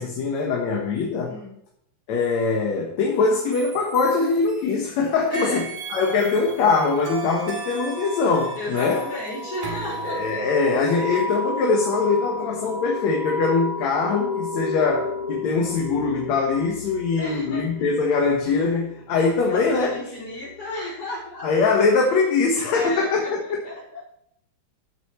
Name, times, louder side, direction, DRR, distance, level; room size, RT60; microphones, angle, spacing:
voice 1, 0.0-1.4 2.1-9.0 10.0-20.0 21.4-23.4, left 4 dB, 70° left, 0 dB, 2.7 m, -22 dB
sound 1, 3.5-4.9 5.3-10.4, right 6 dB, 75° right, 2.9 m, -37 dB
voice 2, 5.3-5.7 8.6-10.7 11.0-11.1 17.2-17.9 19.4-21.7 22.7-24.0, left 1 dB, 50° left, -6 dB, 6.0 m, -34 dB
sound 2, 7.1-21.2, left 2 dB, 50° right, 2.1 m, -33 dB
14.5 x 8.3 x 3.2 m, 0.73 s
omnidirectional pair, 3.3 m